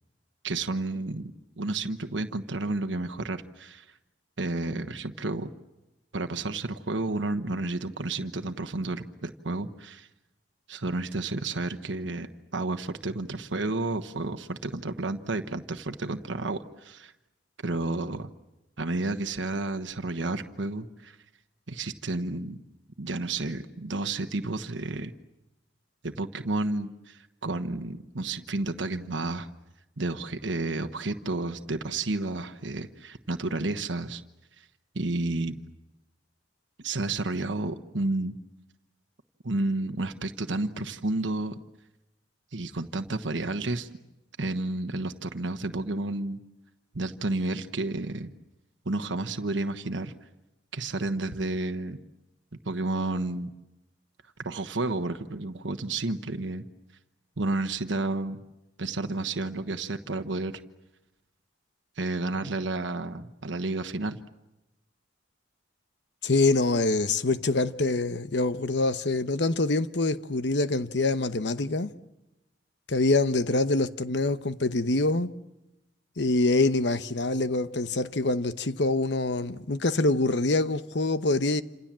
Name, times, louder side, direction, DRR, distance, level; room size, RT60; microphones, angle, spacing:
voice 1, 0.4-3.9 4.4-5.5 6.1-10.1 10.7-17.1 17.6-18.3 18.8-21.2 21.7-22.6 23.0-25.1 26.0-29.5 30.0-34.2 34.6-34.7 34.9-35.5 36.8-38.4 39.4-41.6 42.5-43.9 44.4-46.4 46.9-48.3 48.8-50.1 50.7-52.0 52.6-53.5 54.4-56.6 57.4-58.4 58.8-60.5 62.0-64.2, right 2 dB, 85° right, 1.2 m, -31 dB
voice 2, 66.2-71.9 72.9-75.3 76.2-81.6, left 2 dB, 70° left, 1.0 m, -25 dB
28.0 x 27.5 x 7.5 m
head